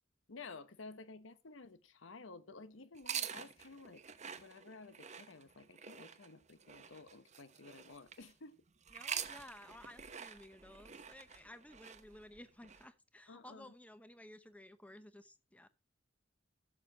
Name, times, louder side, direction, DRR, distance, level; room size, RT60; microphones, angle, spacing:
voice 1, 0.3-4.0 4.4-8.6 13.3-13.7, left 3 dB, 85° left, 1.0 m, -53 dB
sound 1, 2.9-8.3 8.8-12.8, right 8 dB, 35° right, 0.9 m, -46 dB
voice 2, 8.9-15.7, left 1 dB, 5° left, 0.8 m, -55 dB
16.0 x 6.9 x 2.9 m
head